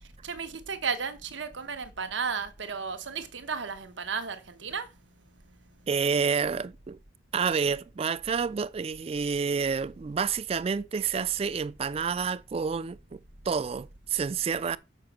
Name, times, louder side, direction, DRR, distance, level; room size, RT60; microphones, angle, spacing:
voice 1, 0.2-4.9, right 5 dB, 85° right, 1.0 m, -34 dB
voice 2, 5.9-7.0 7.3-13.2 13.5-14.8, right 6 dB, 30° right, 0.3 m, -29 dB
6.7 x 5.0 x 5.9 m
head